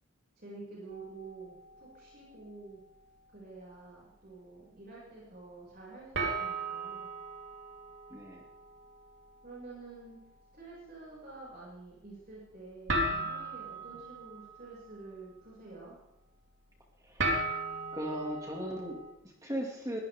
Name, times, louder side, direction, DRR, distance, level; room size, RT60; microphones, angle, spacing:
voice 1, 0.4-2.8 3.3-7.1 9.4-10.2 10.5-16.0, right 3 dB, 45° right, -6 dB, 5.9 m, -49 dB
sound 1, 0.9-2.4 2.8-3.2 3.7-3.8 6.1-19.1, right 2 dB, 60° right, 3.4 m, -38 dB
voice 2, 8.1-8.4 17.0-17.4 17.9-20.0, right 1 dB, 15° right, 0 dB, 2.2 m, -38 dB
22.0 x 17.0 x 3.5 m, 0.93 s
head